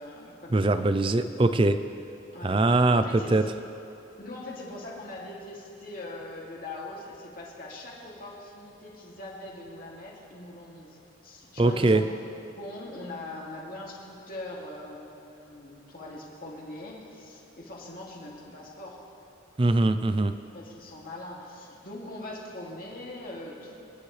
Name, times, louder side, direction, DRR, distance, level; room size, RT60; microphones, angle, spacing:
voice 1, 0.0-0.8 2.3-3.4 4.2-12.1 12.6-19.0 20.5-23.8, left 2 dB, 45° left, -4 dB, 2.6 m, -41 dB
voice 2, 0.5-1.8 2.4-3.4 11.6-12.1 19.6-20.4, right 2 dB, 25° right, 10 dB, 0.5 m, -22 dB
26.5 x 10.5 x 3.3 m, 2.9 s
head